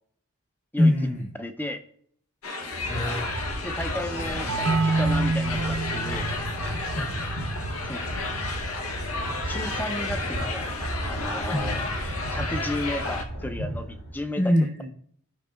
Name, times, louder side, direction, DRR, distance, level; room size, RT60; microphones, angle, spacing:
voice 1, 0.8-1.3 2.8-3.3 6.9-7.3 11.5-11.8 14.4-14.9, left 1 dB, 35° left, 1 dB, 1.5 m, -24 dB
voice 2, 1.4-1.8 3.1-3.2 3.6-6.3 7.8-8.0 9.5-10.8 11.1-11.9 12.3-14.5, left 1 dB, 10° left, 8 dB, 0.5 m, -34 dB
sound 1, 2.4-13.2, left 3 dB, 70° left, 0.8 m, -32 dB
sound 2, 2.6-14.2, right 1 dB, 90° left, 3.3 m, -34 dB
sound 3, 4.5-9.9, right 3 dB, 80° right, 0.7 m, -30 dB
14.5 x 5.2 x 2.3 m, 0.65 s
head